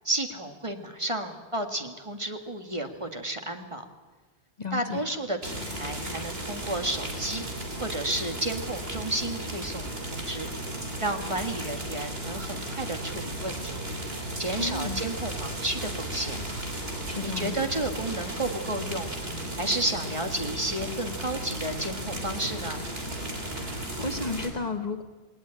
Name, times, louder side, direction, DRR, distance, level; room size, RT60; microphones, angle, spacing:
voice 1, 0.0-3.9 4.7-7.5 7.8-10.5 11.0-13.7 14.4-16.4 17.2-19.1 19.6-22.8, right 1 dB, 30° right, 5 dB, 1.7 m, -32 dB
voice 2, 4.6-5.0 14.6-15.0 17.1-17.6 23.6-25.0, left 3 dB, 40° left, 7 dB, 1.3 m, -33 dB
sound 1, 5.4-24.5, right 1 dB, 70° right, 3.5 m, -35 dB
20.0 x 19.0 x 9.0 m, 1.3 s
omnidirectional pair, 1.1 m